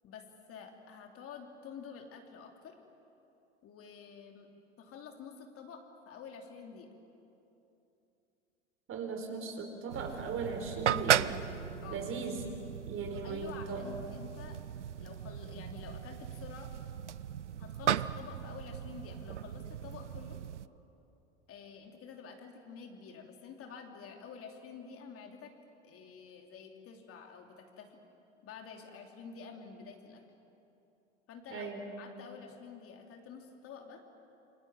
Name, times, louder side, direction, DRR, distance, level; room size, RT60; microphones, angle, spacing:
voice 1, 0.0-2.7 3.6-4.5 4.8-6.9 11.8-12.1 13.2-14.6 15.0-16.7 17.6-20.4 21.5-25.5 25.8-28.0 28.4-30.2 31.3-34.0, left 6 dB, 40° left, 3 dB, 3.1 m, -49 dB
voice 2, 8.9-11.4 11.9-12.4 12.9-13.9 31.5-31.9, right 4 dB, 40° right, 4 dB, 4.4 m, -38 dB
sound 1, 9.9-20.7, right 9 dB, 90° right, 0.6 m, -36 dB
28.5 x 24.0 x 7.6 m, 2.9 s
hypercardioid pair, 80°, 34 cm